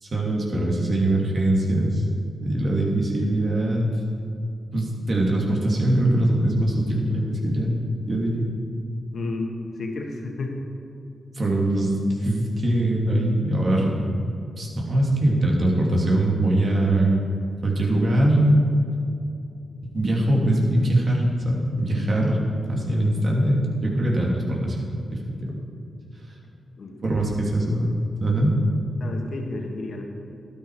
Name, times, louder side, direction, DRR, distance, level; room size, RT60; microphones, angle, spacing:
voice 1, 0.0-2.0 2.4-3.9 4.7-7.8 8.1-8.5 11.4-11.9 12.2-14.1 14.6-17.1 17.6-18.6 19.8-22.4 22.7-25.6 27.0-27.9 28.2-28.5, right 1 dB, 55° right, -2 dB, 2.6 m, -22 dB
voice 2, 9.1-10.6 26.8-27.3 29.0-30.0, left 3 dB, 65° left, 2 dB, 1.7 m, -32 dB
12.0 x 9.8 x 4.8 m, 2.6 s
supercardioid pair, 40°, 0 cm